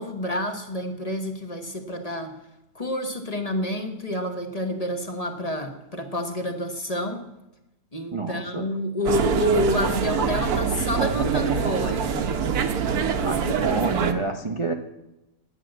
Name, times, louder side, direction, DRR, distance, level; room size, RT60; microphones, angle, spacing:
voice 1, 0.0-2.3 2.7-7.3 7.9-12.3, equal, 25° left, 5 dB, 1.1 m, -28 dB
voice 2, 8.1-8.7 13.2-14.7, right 3 dB, 40° right, 5 dB, 0.4 m, -28 dB
sound 1, 9.1-14.1, right 6 dB, 80° right, 1.4 m, -24 dB
9.7 x 8.8 x 7.6 m, 0.95 s
omnidirectional pair, 1.6 m